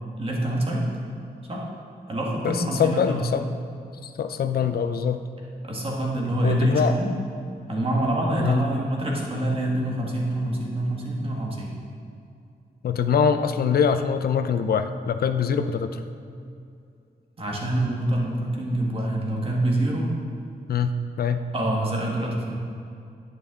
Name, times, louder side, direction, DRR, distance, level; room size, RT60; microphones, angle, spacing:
voice 1, 0.2-0.9 1.4-1.7 2.1-3.2 5.6-7.2 7.7-11.7 17.4-20.1 21.5-22.6, right 1 dB, 35° right, -2 dB, 1.6 m, -26 dB
voice 2, 2.4-3.5 4.0-5.2 6.4-6.9 8.4-8.6 12.8-16.0 20.7-21.4, left 7 dB, 70° left, 9 dB, 0.5 m, -23 dB
10.5 x 9.2 x 3.7 m, 2.5 s
wide cardioid pair, 160°, 16 cm